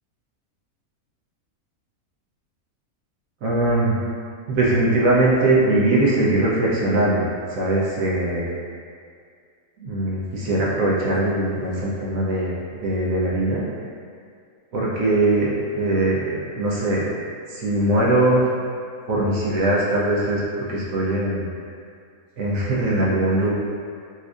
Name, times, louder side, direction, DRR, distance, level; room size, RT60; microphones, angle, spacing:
voice 1, 3.4-4.0 4.5-7.2 7.5-8.5 9.8-13.6 14.7-17.1 17.5-18.5 19.1-20.4 20.7-21.5 22.4-23.5, right 2 dB, 65° right, -6 dB, 1.0 m, -21 dB
4.2 x 2.6 x 2.4 m, 2.2 s
omnidirectional pair, 1.6 m